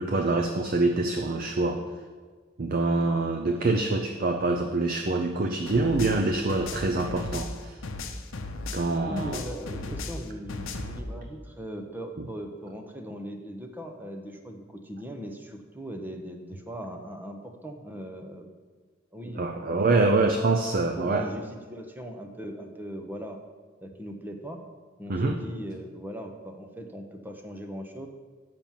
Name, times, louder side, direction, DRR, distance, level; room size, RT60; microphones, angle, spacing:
voice 1, 0.0-1.8 2.6-7.8 8.7-9.4 19.4-21.3 25.1-25.4, right 2 dB, 45° right, 5 dB, 0.5 m, -25 dB
sound 1, 5.7-8.9 9.2-11.0, left 2 dB, 70° left, 0.7 m, -36 dB
voice 2, 9.0-18.5 19.1-20.6 21.0-23.4 23.8-24.6 25.0-28.1, equal, 10° right, 4 dB, 0.7 m, -39 dB
6.9 x 5.9 x 7.3 m, 1.4 s
head